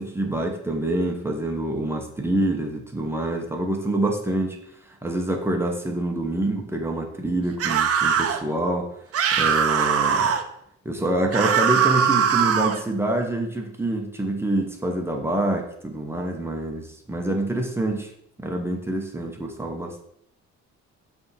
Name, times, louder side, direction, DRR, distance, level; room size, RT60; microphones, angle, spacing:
voice 1, 0.0-4.6 4.9-8.9 9.4-10.3 10.8-18.1 18.4-20.0, right 1 dB, 10° right, 2 dB, 0.9 m, -26 dB
sound 1, 7.6-8.4 9.1-10.4 11.3-12.8, right 7 dB, 50° right, 0.7 m, -21 dB
8.5 x 3.5 x 5.6 m, 0.72 s
cardioid pair, 170°, 29 cm